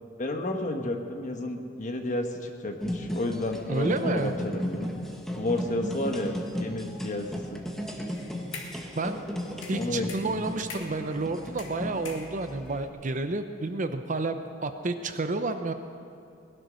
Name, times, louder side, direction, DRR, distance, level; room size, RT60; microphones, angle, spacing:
voice 1, 0.2-4.9 5.3-7.6 9.7-10.4, left 2 dB, 40° left, 4 dB, 1.3 m, -31 dB
sound 1, 2.8-12.9, equal, ahead, 1.3 m, -35 dB
voice 2, 3.7-4.3 8.9-9.2 9.7-15.7, right 3 dB, 40° right, 9 dB, 0.7 m, -30 dB
sound 2, 8.1-8.9 9.6-11.1 11.6-12.7, left 4 dB, 80° left, 2.1 m, -43 dB
19.5 x 11.0 x 6.3 m, 2.5 s
head